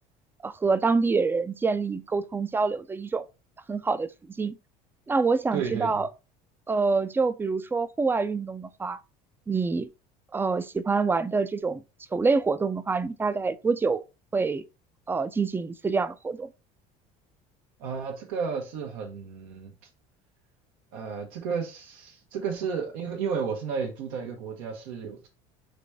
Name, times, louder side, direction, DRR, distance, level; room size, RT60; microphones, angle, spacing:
voice 1, 0.4-3.3 3.7-4.1 4.4-4.5 5.1-6.1 6.7-9.0 9.5-9.9 10.3-11.8 12.1-14.0 14.3-14.6 15.1-16.5, right 4 dB, 10° right, 0.3 m, -26 dB
voice 2, 5.5-6.0 17.8-19.7 20.9-25.3, right 6 dB, 90° right, 1.0 m, -32 dB
4.0 x 3.2 x 3.4 m
supercardioid pair, 110°, 17 cm